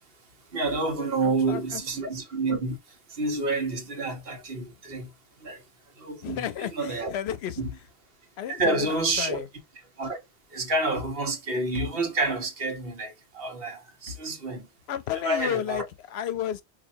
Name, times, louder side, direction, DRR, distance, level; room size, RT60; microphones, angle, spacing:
voice 1, 0.5-5.1 5.4-5.6 6.0-6.5 6.7-7.1 7.6-7.7 8.6-9.4 10.0-10.2 10.5-14.7 15.2-15.8, right 2 dB, 65° right, 1.2 m, -29 dB
voice 2, 1.2-2.0 6.2-7.6 8.4-9.5 14.9-16.6, left 10 dB, 80° left, 0.8 m, -32 dB
4.1 x 2.8 x 2.6 m
omnidirectional pair, 1.1 m